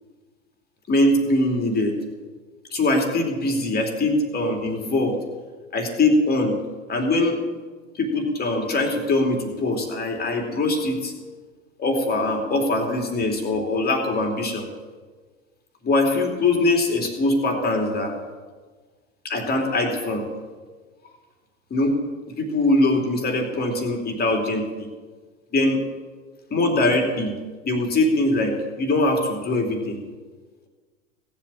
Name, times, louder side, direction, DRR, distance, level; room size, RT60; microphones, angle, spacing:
voice 1, 0.9-2.0 2.7-5.2 5.7-6.6 6.9-7.4 8.0-11.1 11.8-14.7 15.8-18.2 19.2-20.3 21.7-22.0 22.4-24.9 25.5-25.9 26.5-27.3 27.6-30.0, left 2 dB, 25° left, 4 dB, 3.0 m, -22 dB
17.5 x 7.5 x 8.6 m, 1.4 s
figure-of-eight pair, 90°, 41 cm